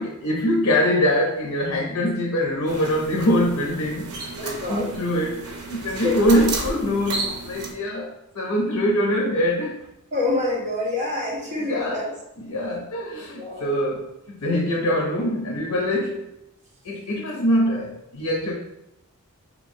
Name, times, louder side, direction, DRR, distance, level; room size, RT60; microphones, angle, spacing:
voice 1, 0.0-4.2 4.4-5.4 5.7-9.8 11.6-12.1 12.4-16.3 16.8-18.5, equal, 80° left, -1 dB, 0.6 m, -23 dB
sound 1, 2.7-7.7, right 3 dB, 80° right, 0.7 m, -32 dB
voice 2, 4.4-4.9 6.0-6.2 10.1-12.1 13.1-13.7, left 2 dB, 35° right, -4 dB, 1.0 m, -27 dB
4.2 x 2.9 x 2.6 m, 0.87 s
head